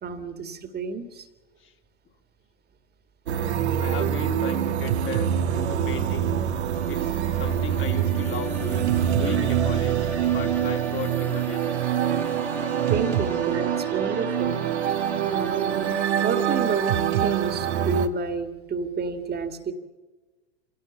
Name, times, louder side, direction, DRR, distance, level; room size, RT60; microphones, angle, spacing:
voice 1, 0.0-1.3 3.8-4.1 5.9-6.0 12.9-14.6 15.2-19.7, right 5 dB, 30° right, 8 dB, 2.1 m, -30 dB
sound 1, 3.3-18.1, right 10 dB, 75° right, 1.4 m, -25 dB
voice 2, 3.8-6.4 6.9-10.0 10.3-11.7, left 7 dB, 35° left, 4 dB, 2.7 m, -36 dB
sound 2, 6.6-17.6, equal, 5° left, 1.6 m, -38 dB
26.5 x 17.5 x 7.2 m, 1.2 s
hypercardioid pair, 85°, 34 cm